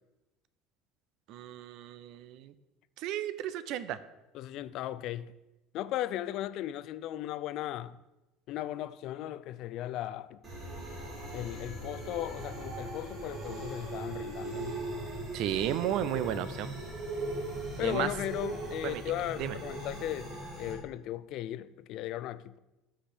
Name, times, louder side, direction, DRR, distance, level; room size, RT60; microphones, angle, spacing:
voice 1, 1.3-2.5 3.0-4.0 15.3-16.8 17.7-18.1 18.8-19.0 19.4-19.6, right 11 dB, 55° right, 0.5 m, -33 dB
voice 2, 4.3-5.3 5.7-8.0 8.5-10.4 11.3-14.8 17.8-22.6, left 13 dB, 50° left, 0.3 m, -37 dB
sound 1, 10.4-20.7, right 2 dB, 25° right, 2.8 m, -39 dB
13.5 x 5.0 x 4.4 m
cardioid pair, 170°, 0 cm